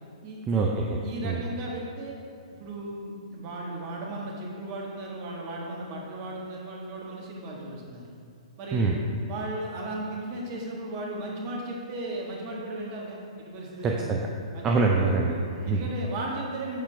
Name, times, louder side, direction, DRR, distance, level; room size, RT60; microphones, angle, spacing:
voice 1, 0.5-1.4 8.7-9.0 13.8-14.3 14.6-15.8, right 3 dB, 20° right, -1 dB, 0.5 m, -25 dB
voice 2, 1.0-2.1 2.6-8.1 8.6-8.9 9.3-14.1 14.5-14.7 15.6-16.8, right 1 dB, 35° right, -2 dB, 1.6 m, -36 dB
7.2 x 6.8 x 3.5 m, 2.4 s
hypercardioid pair, 125°, 3 cm